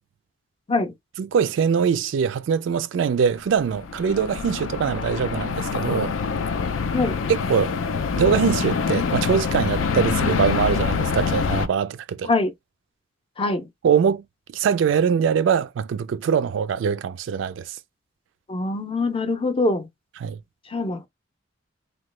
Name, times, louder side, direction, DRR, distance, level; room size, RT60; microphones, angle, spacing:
voice 1, 1.2-6.1 7.3-7.8 8.1-12.3 13.8-14.2 14.5-17.7 20.2-20.4, right 7 dB, 70° right, 0.3 m, -22 dB
sound 1, 3.4-11.7, left 5 dB, 90° left, 0.4 m, -25 dB
voice 2, 13.4-13.7 18.5-19.9 20.7-21.1, left 2 dB, 30° left, 0.5 m, -23 dB
2.9 x 2.2 x 3.1 m
head